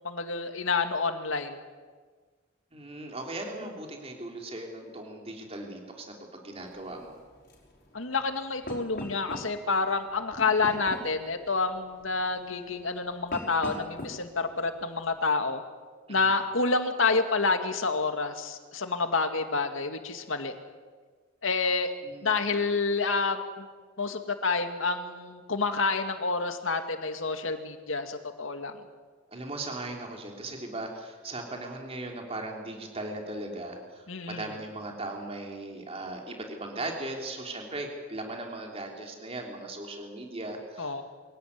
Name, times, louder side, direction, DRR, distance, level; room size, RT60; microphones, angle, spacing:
voice 1, 0.0-1.6 7.9-15.6 16.1-20.5 21.4-21.9 22.2-23.7 24.0-28.7 34.1-34.5 40.8-41.0, left 4 dB, 85° left, 7 dB, 2.2 m, -28 dB
voice 2, 2.7-7.2 16.1-16.4 22.0-22.4 29.3-41.0, right 2 dB, 30° right, 1 dB, 3.4 m, -38 dB
sound 1, 6.7-15.2, left 1 dB, 50° left, 5.5 m, -44 dB
24.0 x 17.0 x 9.6 m, 1.5 s
head